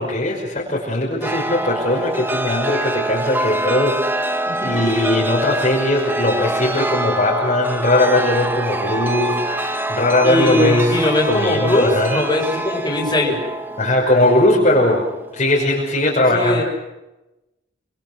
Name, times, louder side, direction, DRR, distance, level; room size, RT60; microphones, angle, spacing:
voice 1, 0.0-12.2 13.8-15.1 15.3-16.6, left 1 dB, 35° left, -3 dB, 6.0 m, -19 dB
Chime, 1.2-15.4, right 1 dB, 10° right, 1.5 m, -25 dB
voice 2, 10.2-13.4 16.3-16.6, left 2 dB, 20° left, -1 dB, 7.8 m, -20 dB
28.5 x 26.5 x 6.3 m, 0.98 s
head